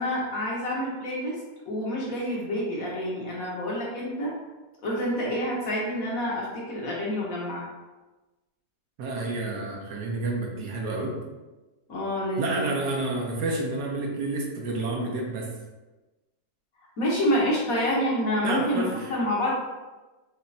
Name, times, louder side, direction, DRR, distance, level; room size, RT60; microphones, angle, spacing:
voice 1, 0.0-1.4 1.6-4.3 4.8-7.6 11.9-12.7 17.0-19.5, equal, 60° left, -4 dB, 1.5 m, -28 dB
voice 2, 9.0-11.2 12.4-15.5 18.4-18.9, right 2 dB, 70° right, 0 dB, 1.4 m, -29 dB
6.4 x 3.0 x 2.7 m, 1.1 s
omnidirectional pair, 1.8 m